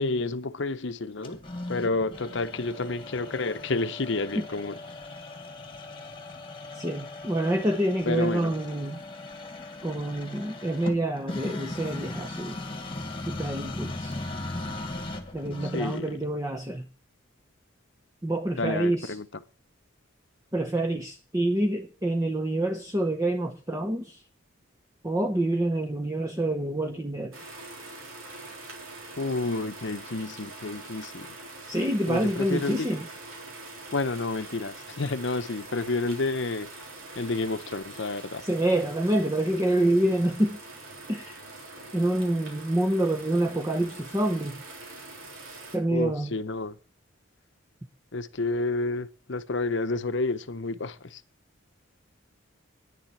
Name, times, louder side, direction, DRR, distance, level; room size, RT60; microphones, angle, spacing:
voice 1, 0.0-1.4 1.7-4.8 8.0-8.5 15.7-16.1 18.6-19.3 29.2-31.3 32.1-32.9 33.9-36.7 37.2-38.4 45.9-46.8 48.1-51.2, left 3 dB, 60° left, 0.8 m, -30 dB
sound 1, 1.2-16.2, left 2 dB, 25° left, 1.5 m, -38 dB
voice 2, 6.7-9.0 9.8-12.6 13.3-14.2 15.3-16.9 18.2-19.1 20.5-24.2 25.0-27.3 31.7-33.1 38.4-40.6 41.1-41.4 41.9-44.6 45.7-46.3, right 1 dB, 15° right, 0.7 m, -27 dB
sound 2, 27.3-45.8, right 2 dB, 85° right, 3.8 m, -44 dB
10.0 x 7.4 x 8.0 m
head